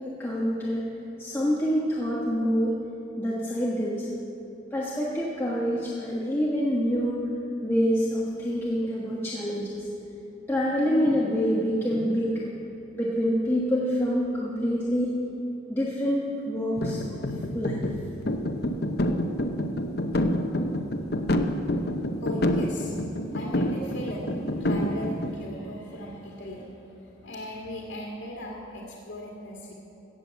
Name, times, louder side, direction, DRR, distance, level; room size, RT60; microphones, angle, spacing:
voice 1, 0.0-0.9 1.2-2.7 3.2-4.1 4.7-7.2 7.6-9.7 10.5-12.4 13.0-15.1 15.7-17.2 17.5-17.8, equal, 10° left, -6 dB, 1.3 m, -26 dB
sound 1, 16.8-25.3, left 1 dB, 55° left, 0.8 m, -28 dB
voice 2, 22.2-23.0 23.3-29.8, equal, 80° left, -4 dB, 2.1 m, -38 dB
16.5 x 7.7 x 7.4 m, 2.8 s
head